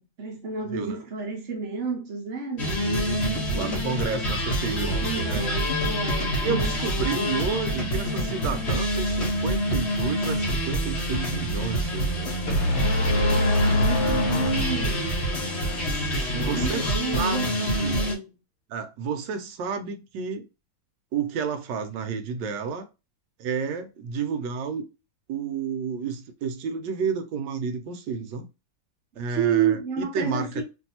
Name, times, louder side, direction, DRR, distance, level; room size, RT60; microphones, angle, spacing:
voice 1, 0.0-3.1 4.7-6.8 13.1-15.2 16.3-18.3 29.3-30.6, right 6 dB, 55° right, 0.8 m, -31 dB
sound 1, 2.6-18.1, equal, 45° left, 0.9 m, -26 dB
voice 2, 2.6-5.4 6.4-12.6 15.8-18.0 18.7-20.5 21.1-22.9 23.4-24.9 25.3-28.5 29.1-30.6, right 6 dB, 75° right, 1.2 m, -31 dB
sound 2, 12.5-15.4, left 1 dB, 75° left, 1.6 m, -25 dB
3.1 x 2.6 x 2.6 m
omnidirectional pair, 2.1 m